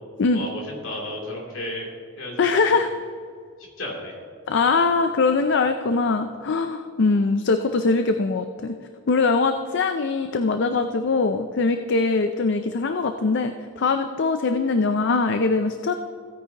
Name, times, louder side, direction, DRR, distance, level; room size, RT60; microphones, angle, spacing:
voice 1, 0.3-1.9 2.2-2.8 3.8-4.1, left 1 dB, 75° left, -2 dB, 3.0 m, -33 dB
voice 2, 2.4-2.9 4.5-8.8 9.1-15.9, left 4 dB, 60° left, 8 dB, 0.5 m, -22 dB
16.0 x 9.4 x 2.9 m, 2.2 s
head